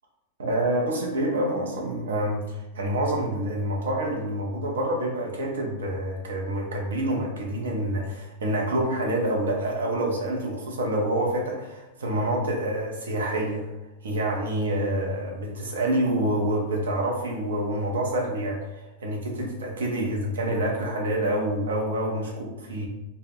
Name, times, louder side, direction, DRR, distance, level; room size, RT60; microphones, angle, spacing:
voice 1, 0.4-13.7 14.0-22.9, right 1 dB, 75° right, -1 dB, 0.6 m, -27 dB
2.1 x 2.1 x 3.6 m, 1.0 s
figure-of-eight pair, 95°, 0 cm